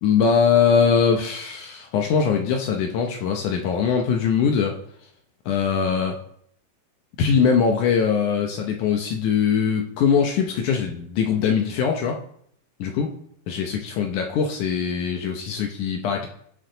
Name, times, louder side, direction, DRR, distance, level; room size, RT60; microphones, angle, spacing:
voice 1, 0.0-4.8 5.5-6.2 7.2-12.2 12.8-13.1 13.5-16.3, left 6 dB, 75° left, 3 dB, 1.9 m, -21 dB
16.0 x 6.4 x 3.9 m, 0.67 s
omnidirectional pair, 4.4 m